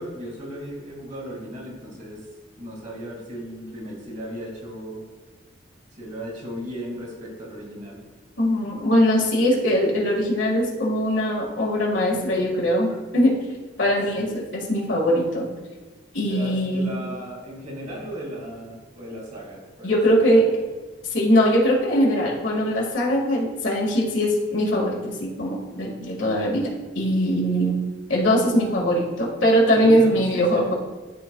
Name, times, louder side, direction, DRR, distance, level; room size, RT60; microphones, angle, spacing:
voice 1, 0.0-2.2 2.6-5.0 6.0-8.0 14.2-14.3 16.2-20.5 29.8-30.7, equal, 40° right, -2 dB, 2.1 m, -36 dB
voice 2, 8.4-13.3 13.8-15.5 16.1-17.1 19.8-20.4 21.1-26.7 27.0-27.7 28.1-30.7, equal, 75° left, -2 dB, 1.8 m, -21 dB
12.0 x 4.3 x 2.3 m, 1.2 s
head